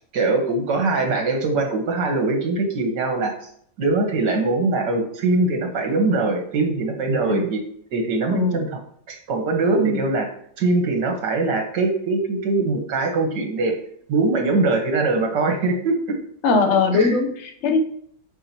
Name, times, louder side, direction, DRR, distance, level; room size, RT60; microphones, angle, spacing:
voice 1, 0.1-3.4 3.8-7.6 7.9-8.8 9.1-10.3 10.6-13.8 14.1-16.2 16.9-17.2, right 3 dB, 75° right, 3 dB, 2.0 m, -22 dB
voice 2, 8.3-8.6 9.8-10.0 16.4-17.8, left 3 dB, 50° left, 5 dB, 1.1 m, -20 dB
8.8 x 5.8 x 3.0 m, 0.63 s
omnidirectional pair, 1.9 m